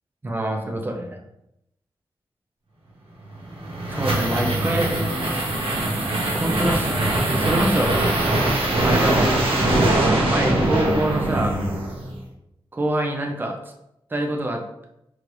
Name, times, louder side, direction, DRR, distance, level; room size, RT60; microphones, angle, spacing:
voice 1, 0.2-1.1 3.9-4.9 5.2-5.5 6.3-7.9 8.8-11.6 12.7-13.6 14.1-14.6, right 1 dB, 20° right, 2 dB, 0.5 m, -25 dB
sound 1, 3.4-12.2, right 1 dB, 80° right, 1.0 m, -22 dB
4.6 x 3.2 x 2.5 m, 0.83 s
wide cardioid pair, 155°, 9 cm